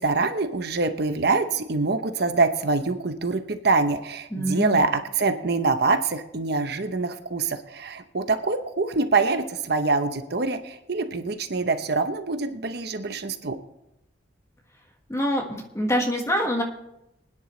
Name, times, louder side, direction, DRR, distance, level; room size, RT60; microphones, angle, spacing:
voice 1, 0.0-13.6, right 3 dB, 55° right, 8 dB, 0.8 m, -25 dB
voice 2, 4.3-4.8 15.1-16.6, equal, 15° left, 2 dB, 1.6 m, -25 dB
24.5 x 9.9 x 3.2 m, 0.85 s
head